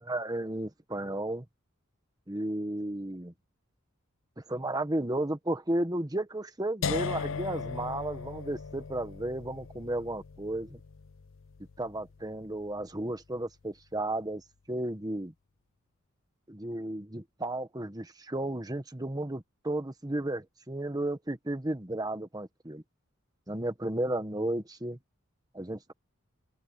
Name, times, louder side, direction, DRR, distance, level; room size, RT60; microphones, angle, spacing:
voice 1, 0.0-1.4 2.3-3.3 4.4-10.8 11.8-15.3 16.5-22.8 23.5-25.0 25.5-25.9, right 1 dB, 20° right, 1.3 m, -33 dB
sound 1, 6.8-12.8, left 5 dB, 65° left, 0.5 m, -38 dB
open air
head